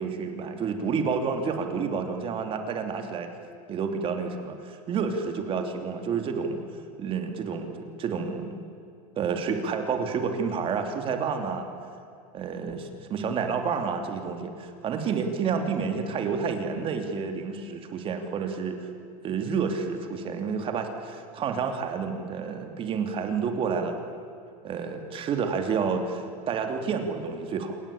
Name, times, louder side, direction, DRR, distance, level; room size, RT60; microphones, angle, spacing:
voice 1, 0.0-3.3 3.7-6.6 7.0-8.6 9.2-11.7 12.3-18.9 19.2-24.0 24.6-27.8, right 5 dB, 30° right, 5 dB, 3.1 m, -29 dB
27.5 x 24.5 x 8.7 m, 2.5 s
supercardioid pair, 145°, 19 cm